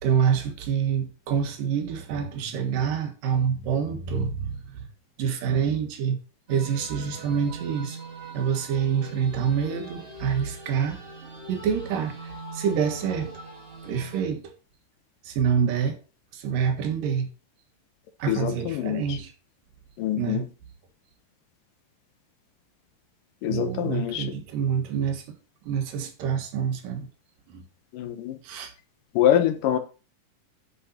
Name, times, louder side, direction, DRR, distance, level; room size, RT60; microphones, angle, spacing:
voice 1, 0.0-4.8 5.2-6.2 6.5-8.0 8.3-11.0 11.5-13.3 13.8-14.4 15.2-16.0 16.3-17.3 18.2-19.3 20.2-20.4 23.5-25.2 25.7-27.1 27.5-27.6 28.4-28.7, right 7 dB, 75° right, 3.1 m, -26 dB
sound 1, 6.5-14.2, right 3 dB, 25° right, 1.4 m, -41 dB
voice 2, 18.3-19.2 20.0-20.5 23.4-24.3 27.9-28.4 29.1-29.8, left 11 dB, 75° left, 2.6 m, -25 dB
10.5 x 5.4 x 4.2 m
omnidirectional pair, 4.0 m